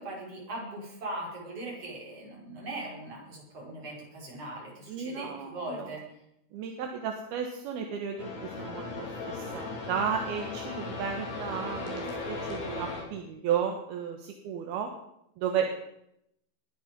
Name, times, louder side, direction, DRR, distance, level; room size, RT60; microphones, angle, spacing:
voice 1, 0.0-6.0, right 1 dB, 35° right, -3 dB, 6.6 m, -40 dB
voice 2, 4.9-5.9 6.5-14.9 15.4-15.7, right 7 dB, 75° right, 3 dB, 3.3 m, -33 dB
sound 1, 8.2-13.0, left 3 dB, 80° left, 5.5 m, -37 dB
20.5 x 13.0 x 5.3 m, 0.78 s
omnidirectional pair, 4.6 m